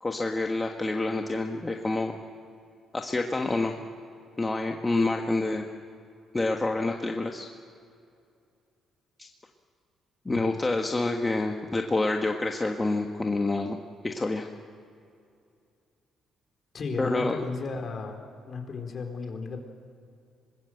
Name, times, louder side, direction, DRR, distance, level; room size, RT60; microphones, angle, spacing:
voice 1, 0.0-2.1 2.9-3.7 4.4-5.7 6.3-7.5 9.2-9.3 10.2-13.8 14.0-14.5 17.0-17.4, left 2 dB, 20° left, 2 dB, 1.5 m, -27 dB
voice 2, 16.7-18.2 18.5-19.6, left 4 dB, 50° left, 3 dB, 4.4 m, -34 dB
25.0 x 20.5 x 7.9 m, 2.4 s
cardioid pair, 90°, 0 cm